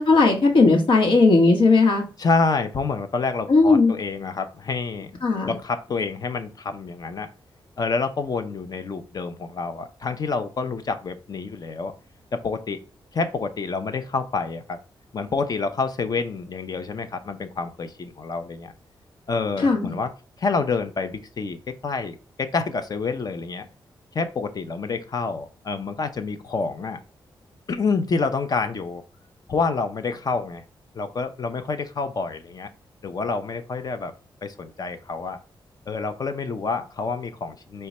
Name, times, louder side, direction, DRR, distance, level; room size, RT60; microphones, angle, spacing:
voice 1, 0.0-2.0 3.5-3.9 5.2-5.5 19.6-19.9, left 3 dB, 75° left, 1 dB, 1.1 m, -17 dB
voice 2, 2.2-5.1 5.5-7.3 7.8-11.9 12.3-12.8 13.1-14.8 15.1-18.7 19.3-20.1 20.4-23.7 24.1-27.0 27.7-29.0 29.5-30.6 30.9-32.7 33.0-34.1 34.4-35.4 35.9-37.9, left 4 dB, 50° left, 8 dB, 0.6 m, -28 dB
4.7 x 2.2 x 4.1 m, 0.34 s
cardioid pair, 80°, 9 cm